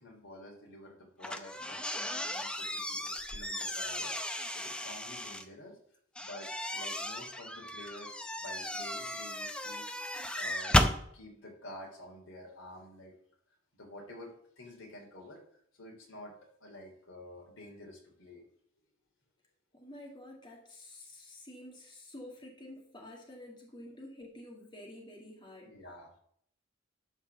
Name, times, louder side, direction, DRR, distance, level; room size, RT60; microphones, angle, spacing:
voice 1, 0.0-4.1 4.5-5.8 6.2-9.8 10.3-13.1 13.7-15.4 15.8-16.3 16.6-18.5 25.6-26.1, left 1 dB, 75° left, 1 dB, 2.9 m, -49 dB
sound 1, 1.2-5.4 6.2-11.0, left 1 dB, 5° left, 0.6 m, -34 dB
voice 2, 19.7-25.8, left 1 dB, 25° left, -1 dB, 1.9 m, -49 dB
12.0 x 4.5 x 6.8 m, 0.67 s
head